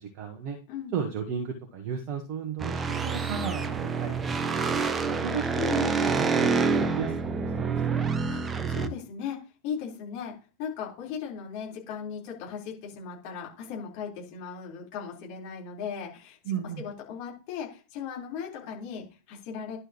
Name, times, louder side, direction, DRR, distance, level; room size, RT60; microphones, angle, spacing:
voice 1, 0.0-0.6 0.9-4.2 5.2-6.5 6.8-7.7 16.4-16.8, right 6 dB, 40° right, 4 dB, 1.4 m, -34 dB
sound 1, 2.6-8.9, right 5 dB, 20° right, 0.8 m, -27 dB
voice 2, 8.3-9.4 9.6-16.4 16.8-19.8, left 7 dB, 45° left, -3 dB, 4.1 m, -37 dB
11.0 x 6.4 x 3.0 m, 0.32 s
figure-of-eight pair, 90°, 0 cm